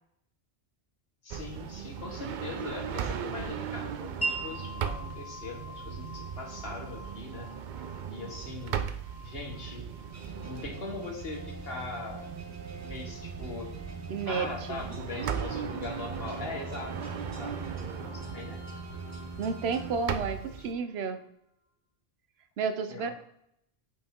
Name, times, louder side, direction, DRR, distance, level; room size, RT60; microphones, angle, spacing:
voice 1, 1.2-7.5 8.1-8.9 9.2-9.9 10.4-12.3 12.8-13.7 14.3-17.0 17.2-17.6 18.0-18.6 19.8-20.5 22.9-23.1, left 3 dB, 70° left, 1 dB, 1.7 m, -41 dB
sound 1, 1.3-20.7, right 8 dB, 60° right, 0.6 m, -38 dB
Wind chime, 4.2-11.9, right 2 dB, 20° left, 1.3 m, -42 dB
sound 2, 10.1-20.8, right 2 dB, 15° right, 1.1 m, -43 dB
voice 2, 14.1-14.8 19.4-21.2 22.6-23.1, right 5 dB, 80° right, 10 dB, 1.0 m, -31 dB
8.4 x 5.0 x 3.6 m, 0.74 s
omnidirectional pair, 1.1 m